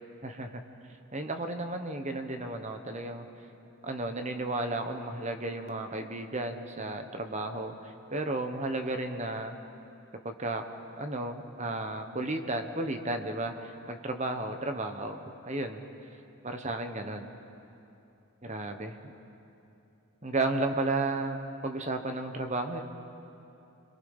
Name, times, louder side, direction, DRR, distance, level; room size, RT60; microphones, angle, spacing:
voice 1, 0.2-0.6 1.1-3.2 3.8-9.6 10.2-10.7 11.0-15.9 16.4-17.3 18.4-19.1 20.2-22.8, right 2 dB, 30° right, 6 dB, 1.2 m, -33 dB
30.0 x 23.0 x 5.6 m, 2.9 s
head